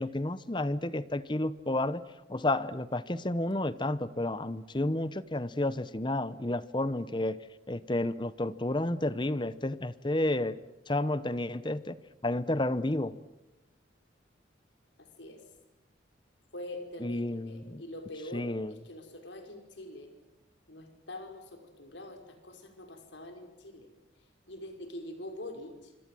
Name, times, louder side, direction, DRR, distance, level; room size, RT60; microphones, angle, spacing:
voice 1, 0.0-2.0 2.3-7.4 7.7-10.6 10.9-11.9 12.2-13.1 17.0-17.8 18.3-18.7, left 1 dB, 25° left, 15 dB, 0.9 m, -31 dB
voice 2, 15.0-15.4 16.5-20.1 20.7-23.9 24.5-25.9, left 1 dB, 70° left, 6 dB, 5.6 m, -44 dB
27.0 x 25.5 x 7.7 m, 0.99 s
head